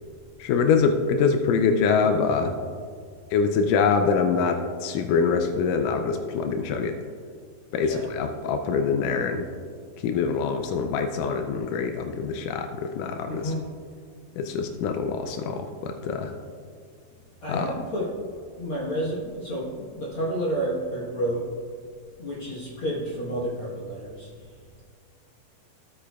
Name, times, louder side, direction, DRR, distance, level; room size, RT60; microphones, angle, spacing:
voice 1, 0.4-2.5 3.3-7.0 7.7-9.5 10.0-13.5 14.4-16.3 17.5-17.8, left 5 dB, 85° left, 6 dB, 1.8 m, -24 dB
voice 2, 13.3-13.6 17.4-18.1 18.6-21.5 22.2-24.8, right 1 dB, 70° left, -5 dB, 1.2 m, -30 dB
15.0 x 8.6 x 2.3 m, 2.1 s
omnidirectional pair, 4.3 m